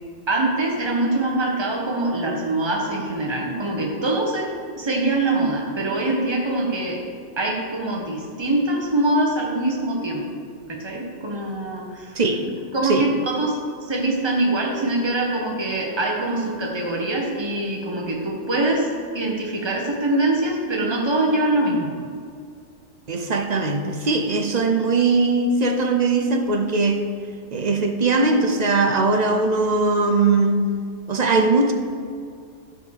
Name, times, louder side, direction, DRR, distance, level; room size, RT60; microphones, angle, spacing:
voice 1, 0.3-7.0 7.4-10.3 10.7-12.2 12.7-18.9 19.1-21.9, right 2 dB, 20° right, -1 dB, 1.4 m, -23 dB
voice 2, 12.1-12.4 12.8-13.1 23.1-27.0 27.5-30.6 31.1-31.7, right 3 dB, 40° right, 5 dB, 0.7 m, -20 dB
12.0 x 4.9 x 6.6 m, 2.3 s
omnidirectional pair, 1.3 m